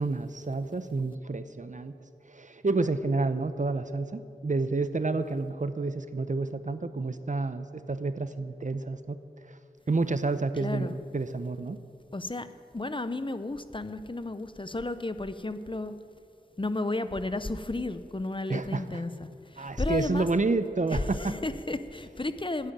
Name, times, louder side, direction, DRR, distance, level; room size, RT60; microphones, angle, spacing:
voice 1, 0.0-2.0 2.3-9.2 9.5-9.6 9.9-11.8 18.5-19.0 19.6-21.4, right 3 dB, 45° right, 11 dB, 0.7 m, -29 dB
voice 2, 10.6-11.0 12.1-12.5 12.7-16.0 16.6-20.3 20.9-22.7, left 2 dB, 30° left, 11 dB, 0.7 m, -33 dB
11.0 x 10.0 x 9.0 m, 2.6 s
wide cardioid pair, 50°, 17 cm